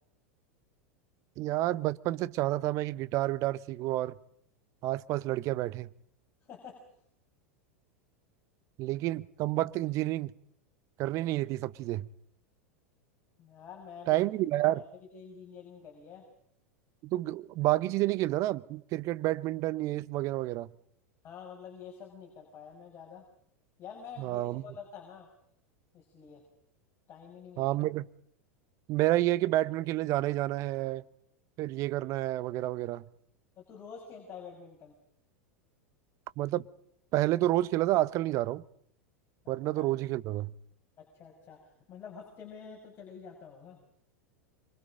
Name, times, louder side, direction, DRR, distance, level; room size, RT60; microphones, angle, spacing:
voice 1, 1.4-4.1 4.8-5.9 8.8-10.3 11.0-12.1 14.1-14.8 17.0-20.7 24.2-24.6 27.6-28.0 28.9-31.0 31.6-33.0 36.4-36.6 37.1-38.6 39.5-40.5, right 16 dB, 45° right, 0.9 m, -29 dB
voice 2, 6.5-6.8 13.4-14.1 14.7-14.8 15.1-16.2 21.2-23.3 23.8-25.3 25.9-26.4 27.1-27.7 33.6-34.9 39.8-39.9 41.0-41.6 41.9-43.8, left 6 dB, 35° left, 6.3 m, -47 dB
26.5 x 24.0 x 5.2 m
figure-of-eight pair, 90°, 8 cm